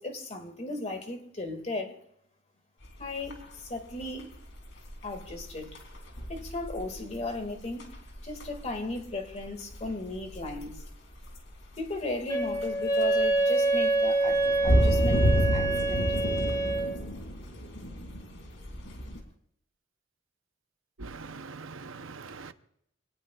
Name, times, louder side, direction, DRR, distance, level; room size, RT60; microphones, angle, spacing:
voice 1, 0.0-2.0 3.0-4.3 5.0-5.8 6.3-7.9 8.2-10.9 11.8-16.2, left 2 dB, 35° left, 2.1 m, -36 dB
sound 1, 2.8-19.2, equal, 70° left, 3.1 m, -31 dB
Wind instrument woodwind instrument, 12.3-16.9, right 2 dB, 20° left, 3.9 m, -26 dB
voice 2, 21.0-22.5, right 4 dB, 75° right, 0.8 m, -42 dB
25.5 x 18.5 x 2.4 m
head